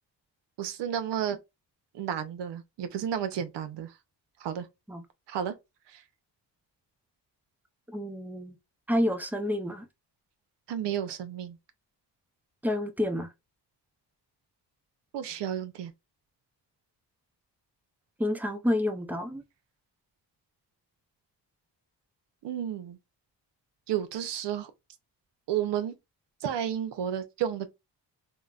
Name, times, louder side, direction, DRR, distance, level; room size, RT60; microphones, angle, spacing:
voice 1, 0.6-1.4 1.9-4.0 4.4-4.7 5.3-5.5 5.9-6.0 10.7-11.6 15.1-15.9 22.4-23.0 23.9-24.7 25.5-25.9 26.4-27.7, right 9 dB, 75° right, 0.7 m, -32 dB
voice 2, 7.9-8.5 8.9-9.9 12.6-13.3 18.2-19.4, left 1 dB, 5° right, 0.5 m, -29 dB
3.7 x 2.1 x 2.4 m
cardioid pair, 85°, 42 cm